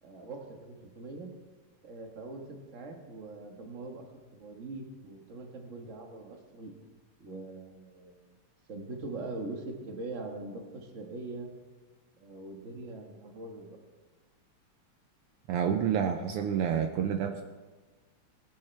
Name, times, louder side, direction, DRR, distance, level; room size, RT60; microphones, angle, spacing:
voice 1, 0.0-1.3 1.8-4.0 4.4-6.7 7.2-8.3 8.7-11.5 12.2-13.8, right 2 dB, 40° right, 3 dB, 1.1 m, -42 dB
voice 2, 15.5-17.4, right 8 dB, 90° right, 5 dB, 1.2 m, -28 dB
19.5 x 10.5 x 3.3 m, 1.3 s
omnidirectional pair, 3.3 m